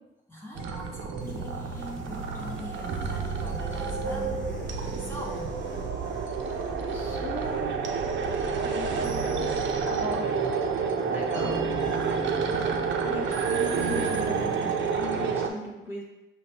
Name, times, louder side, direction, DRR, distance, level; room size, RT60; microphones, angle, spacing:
voice 1, 0.3-4.4 5.0-5.6, left 1 dB, 10° left, -4 dB, 1.1 m, -43 dB
sound 1, 0.6-15.5, right 5 dB, 70° right, 0.6 m, -29 dB
sound 2, 1.2-14.8, equal, 40° left, 1.3 m, -42 dB
voice 2, 6.8-7.8 8.6-9.5 9.9-10.3 11.1-11.6 13.0-16.0, left 1 dB, 10° right, -4 dB, 1.0 m, -37 dB
5.2 x 2.2 x 4.2 m, 0.97 s
cardioid pair, 90°, 20 cm